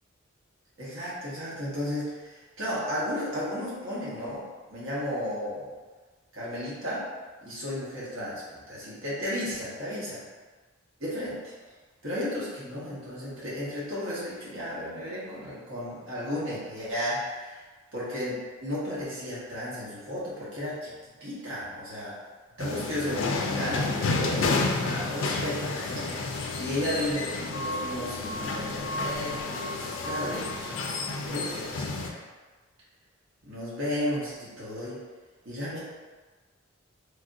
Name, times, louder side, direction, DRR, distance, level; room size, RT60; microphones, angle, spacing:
voice 1, 0.8-5.7 6.3-7.1 7.4-10.2 11.0-11.5 12.0-17.6 17.9-22.2 22.6-32.2 33.4-35.0 35.4-35.8, left 1 dB, 75° right, -8 dB, 1.1 m, -34 dB
sound 1, 22.6-32.1, left 3 dB, 65° left, 0.3 m, -30 dB
3.4 x 2.5 x 2.5 m, 1.3 s
head